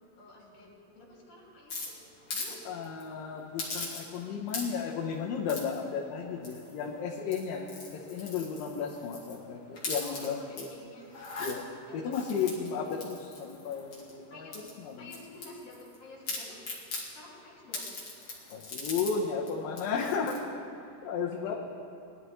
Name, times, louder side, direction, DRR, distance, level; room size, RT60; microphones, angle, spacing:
voice 1, 0.2-2.0 2.3-2.7 10.0-11.1 11.9-12.5 14.3-16.6 17.1-18.0 21.3-21.5, left 2 dB, 60° left, -4 dB, 4.5 m, -50 dB
sound 1, 1.7-2.6 2.8-3.0 3.6-4.2 4.5-4.9 5.5-5.8 6.4-6.8 7.2-9.4 9.7-10.6 11.1-11.5 12.1-14.1 14.5-16.0 16.3-17.1 17.7-19.1 19.5-19.6 19.8-20.4, left 3 dB, 40° left, 2.7 m, -39 dB
voice 2, 2.7-7.6 7.9-10.7 11.4-11.6 11.9-14.5 14.8-15.1 18.5-20.4 21.0-21.5, left 6 dB, 80° left, -3 dB, 2.7 m, -34 dB
21.0 x 12.5 x 3.2 m, 2.6 s
omnidirectional pair, 4.0 m